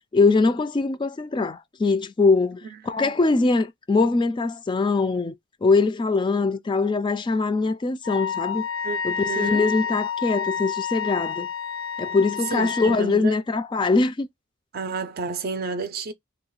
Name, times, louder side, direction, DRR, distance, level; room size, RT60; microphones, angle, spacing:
voice 1, 0.1-5.3 5.6-8.7 9.0-11.5 12.0-14.3, left 3 dB, 25° left, 0.3 m, -22 dB
Wind instrument woodwind instrument, 8.0-13.0, left 6 dB, 85° left, 0.5 m, -29 dB
voice 2, 8.8-9.6 12.5-13.3 14.7-16.1, right 4 dB, 50° right, 0.5 m, -31 dB
2.9 x 2.2 x 3.9 m
head